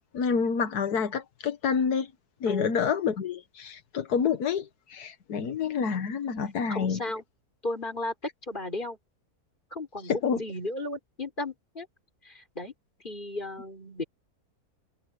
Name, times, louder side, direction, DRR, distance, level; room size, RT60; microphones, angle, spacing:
voice 1, 0.1-2.1 2.4-7.0 10.1-10.4, left 6 dB, 85° left, 1.7 m, -28 dB
voice 2, 6.7-7.2 7.6-8.1 8.4-9.0 9.7-11.9 12.2-12.7 13.0-14.0, left 2 dB, 30° left, 5.2 m, -34 dB
omnidirectional pair, 1.6 m